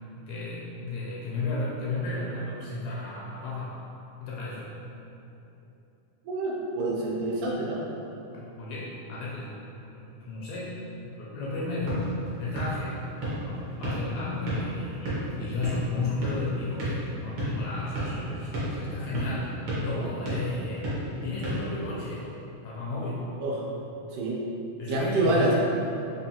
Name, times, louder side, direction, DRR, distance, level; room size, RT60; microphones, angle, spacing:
voice 1, 0.3-3.8 4.2-4.7 8.3-9.6 9.9-10.8 11.0-12.1 12.4-13.0 13.5-19.5 19.8-20.8 21.2-22.3 22.6-23.3 24.8-25.5, left 3 dB, 80° left, -6 dB, 1.7 m, -33 dB
voice 2, 6.3-7.8 23.4-23.5 24.1-24.4 24.9-25.5, right 2 dB, 90° right, -4 dB, 2.2 m, -27 dB
sound 1, 11.5-22.3, right 1 dB, 70° right, 1.2 m, -34 dB
5.2 x 2.4 x 2.7 m, 2.9 s
omnidirectional pair, 3.5 m